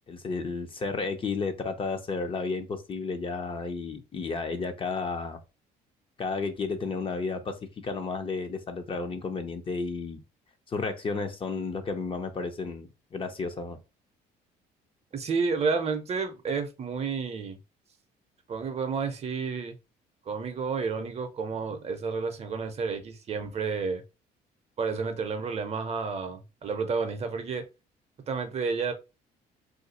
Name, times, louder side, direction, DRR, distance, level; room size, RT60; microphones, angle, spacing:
voice 1, 0.1-5.4 6.2-10.2 10.7-13.8, left 4 dB, 30° left, 0.6 m, -32 dB
voice 2, 15.1-17.6 18.5-19.8 20.3-24.0 24.8-27.7 28.3-28.9, right 5 dB, 40° right, 0.7 m, -30 dB
2.5 x 2.3 x 4.0 m
cardioid pair, 110°, 17 cm